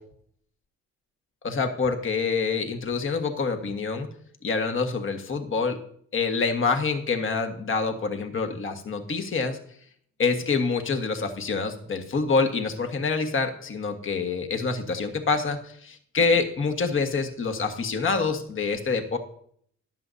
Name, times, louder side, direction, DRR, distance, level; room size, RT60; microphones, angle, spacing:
voice 1, 1.4-4.1 4.4-5.8 6.1-9.6 10.2-19.2, left 4 dB, 40° left, 6 dB, 1.5 m, -26 dB
14.5 x 11.0 x 2.7 m, 0.62 s
cardioid pair, 90°, 30 cm